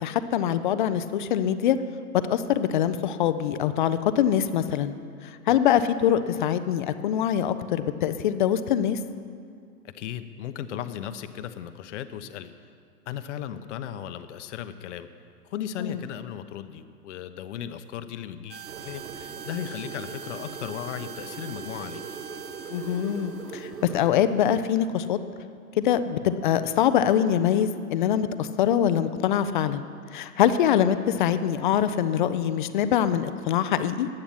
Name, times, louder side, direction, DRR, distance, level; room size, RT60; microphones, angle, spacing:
voice 1, 0.0-1.8 2.2-5.0 5.5-9.0 15.8-16.0 22.7-25.2 25.8-29.8 30.1-34.1, left 10 dB, 35° left, 12 dB, 0.4 m, -24 dB
voice 2, 9.8-12.5 13.1-15.1 15.4-22.0, left 10 dB, 50° left, 11 dB, 0.8 m, -36 dB
sound 1, 18.5-24.8, right 6 dB, 35° right, 0.7 m, -44 dB
sound 2, 18.6-24.2, right 6 dB, 75° right, 1.1 m, -41 dB
10.0 x 8.8 x 7.3 m, 2.2 s
hypercardioid pair, 120°, 46 cm